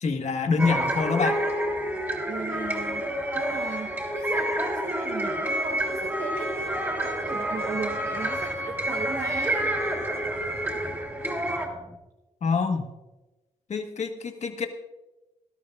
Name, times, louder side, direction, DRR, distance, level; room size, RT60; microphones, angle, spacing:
voice 1, 0.0-1.4 12.4-12.9 13.7-14.7, left 5 dB, 60° left, 5 dB, 1.5 m, -26 dB
sound 1, 0.6-11.7, right 1 dB, 15° right, 3.2 m, -28 dB
voice 2, 2.3-3.1 3.3-9.6, right 4 dB, 65° right, 4 dB, 1.2 m, -37 dB
sound 2, 6.3-12.0, equal, 5° left, 1.6 m, -47 dB
19.0 x 12.5 x 2.5 m, 1.1 s
cardioid pair, 90°, 13 cm